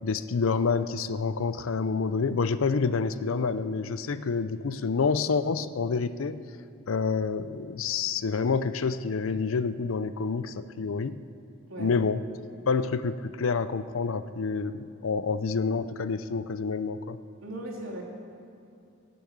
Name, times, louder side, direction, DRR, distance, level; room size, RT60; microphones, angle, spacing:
voice 1, 0.0-6.4 6.9-11.2 11.8-12.2 12.7-17.2, left 5 dB, 80° left, 13 dB, 0.5 m, -28 dB
voice 2, 11.7-12.0 17.4-18.0, right 1 dB, 90° right, -3 dB, 3.0 m, -37 dB
17.0 x 7.0 x 8.0 m, 2.5 s
head